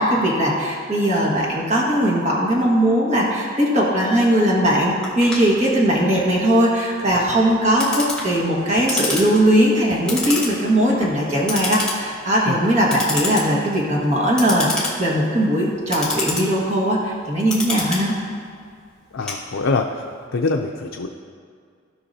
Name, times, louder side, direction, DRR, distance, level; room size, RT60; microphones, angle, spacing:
voice 1, 0.0-18.1, equal, 35° right, -4 dB, 1.6 m, -19 dB
Clock, 5.0-20.0, left 3 dB, 5° left, 1.6 m, -30 dB
voice 2, 19.1-19.9 20.3-21.1, left 3 dB, 75° left, 1 dB, 0.5 m, -23 dB
16.5 x 5.9 x 2.8 m, 2.2 s
head